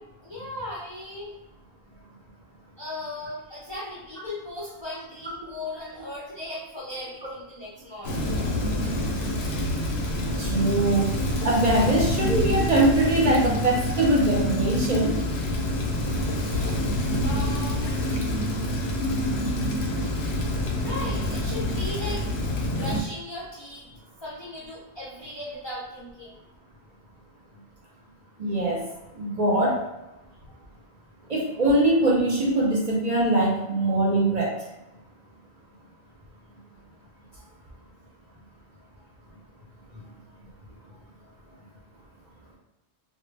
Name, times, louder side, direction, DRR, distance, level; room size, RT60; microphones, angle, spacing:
voice 1, 0.2-1.4 2.8-8.3 17.2-17.9 20.8-22.3 22.7-23.9 24.2-26.4, left 1 dB, 40° left, -7 dB, 0.4 m, -37 dB
Rain, 8.0-23.0, left 1 dB, 90° left, 0.8 m, -27 dB
voice 2, 10.4-11.1 11.4-15.2 28.4-28.8 29.2-29.8 31.3-34.5, right 1 dB, 50° right, -4 dB, 0.6 m, -22 dB
2.1 x 2.1 x 3.2 m, 0.98 s
omnidirectional pair, 1.1 m